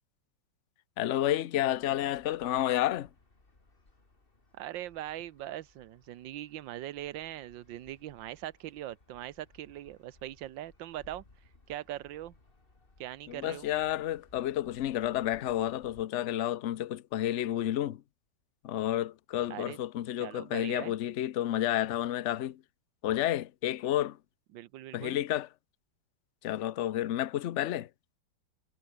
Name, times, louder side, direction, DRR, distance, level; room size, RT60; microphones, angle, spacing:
voice 1, 1.0-3.1 13.3-18.0 18.6-22.6 23.0-24.2 24.9-25.5 26.4-27.9, left 12 dB, 60° left, 0.7 m, -30 dB
sound 1, 1.7-16.0, left 3 dB, 30° left, 2.9 m, -62 dB
voice 2, 4.5-11.2 11.7-12.3 13.0-13.7 19.5-19.8 20.2-21.0 24.5-25.2, right 13 dB, 85° right, 1.5 m, -41 dB
omnidirectional pair, 2.0 m